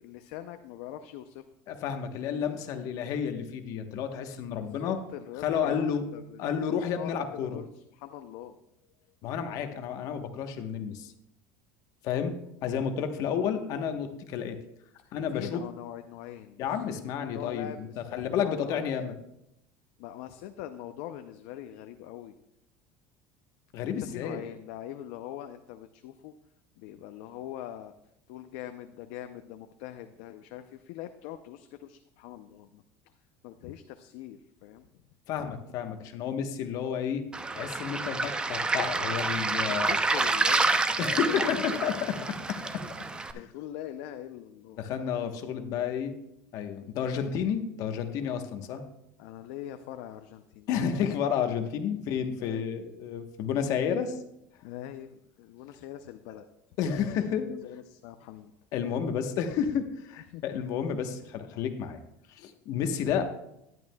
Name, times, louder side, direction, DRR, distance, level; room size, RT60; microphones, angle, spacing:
voice 1, 0.0-1.4 4.6-6.4 6.9-8.6 15.0-19.1 20.0-22.4 24.1-26.3 26.8-27.9 28.3-32.8 33.4-34.9 39.7-41.8 43.3-44.8 49.2-50.7 52.4-52.8 54.6-56.4 56.9-58.5 60.3-60.4, left 12 dB, 75° left, 8 dB, 0.6 m, -43 dB
voice 2, 1.7-5.0 5.4-6.0 6.4-7.6 9.2-11.1 12.0-12.3 12.6-14.6 15.1-15.6 16.6-19.1 23.7-24.4 35.3-37.2 37.5-39.9 41.0-42.9 44.8-46.1 46.5-48.8 50.7-54.2 56.3-56.4 56.8-57.5 58.7-62.0 62.3-63.2, left 7 dB, 55° left, 7 dB, 1.1 m, -31 dB
Waves surf, 37.3-43.3, right 3 dB, 15° right, 0.6 m, -28 dB
12.0 x 10.5 x 2.3 m, 0.81 s
cardioid pair, 135°, 7 cm